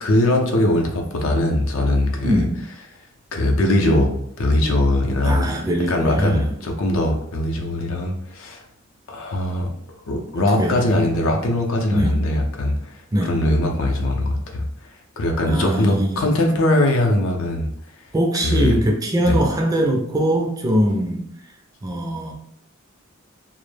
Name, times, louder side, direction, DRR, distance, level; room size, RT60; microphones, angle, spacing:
voice 1, 0.0-2.4 3.3-5.5 5.9-8.6 9.1-9.7 10.1-12.9 13.2-14.7 15.2-17.7 18.4-18.8 19.2-19.4, left 1 dB, 85° left, 2 dB, 0.5 m, -21 dB
voice 2, 5.2-6.5 10.6-11.0 11.9-12.2 13.1-13.4 15.5-16.2 18.1-21.2 21.8-22.3, equal, 15° right, 1 dB, 0.3 m, -21 dB
2.1 x 2.0 x 3.1 m, 0.70 s
head